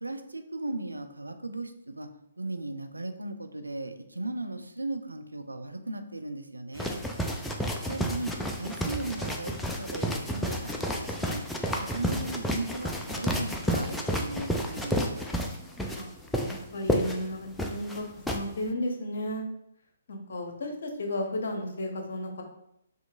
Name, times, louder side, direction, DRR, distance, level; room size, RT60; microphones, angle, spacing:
voice 1, 0.0-2.1 2.4-7.0 7.8-8.3 8.6-11.5 11.8-15.2, right 2 dB, 85° right, 7 dB, 0.5 m, -37 dB
sound 1, 6.8-18.4, equal, 5° left, 0.4 m, -31 dB
voice 2, 15.9-19.4 20.1-22.4, left 1 dB, 60° left, 3 dB, 0.8 m, -34 dB
5.5 x 2.9 x 2.5 m, 0.78 s
figure-of-eight pair, 130°, 0 cm